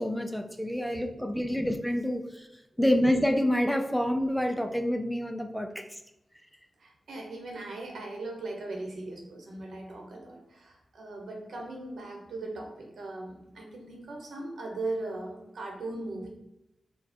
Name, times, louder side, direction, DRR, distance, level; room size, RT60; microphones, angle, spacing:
voice 1, 0.0-2.5 2.8-6.0, equal, 5° left, 6 dB, 0.4 m, -27 dB
voice 2, 6.8-16.3, right 2 dB, 75° right, 0 dB, 1.1 m, -39 dB
4.5 x 2.3 x 4.3 m, 0.87 s
wide cardioid pair, 100°, 0 cm